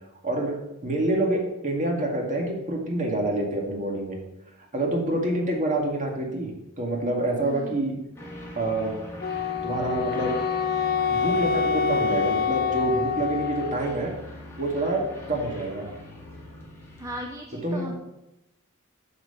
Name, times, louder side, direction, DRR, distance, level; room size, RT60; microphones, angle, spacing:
voice 1, 0.2-0.6 0.8-4.2 4.7-6.5 6.8-7.9 8.6-8.9 9.6-10.3 11.1-14.1 14.6-15.0 15.3-15.9 17.6-17.9, right 2 dB, 35° right, 0 dB, 2.0 m, -27 dB
voice 2, 7.4-7.8 17.0-17.9, right 1 dB, 15° right, 2 dB, 0.6 m, -36 dB
sound 1, 8.2-17.2, left 1 dB, 10° left, 1.9 m, -41 dB
Wind instrument woodwind instrument, 9.2-14.0, left 6 dB, 45° left, 0.5 m, -26 dB
8.5 x 4.8 x 6.7 m, 0.93 s
head